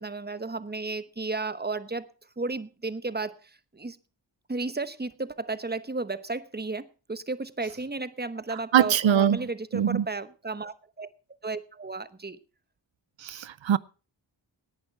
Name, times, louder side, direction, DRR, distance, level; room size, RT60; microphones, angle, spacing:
voice 1, 0.0-4.0 4.5-11.1 11.4-12.4, right 3 dB, 20° right, 14 dB, 1.1 m, -34 dB
voice 2, 8.7-9.4 9.7-10.0 13.2-13.8, right 9 dB, 85° right, 19 dB, 0.6 m, -22 dB
18.0 x 10.5 x 4.5 m, 0.35 s
wide cardioid pair, 70°, 45 cm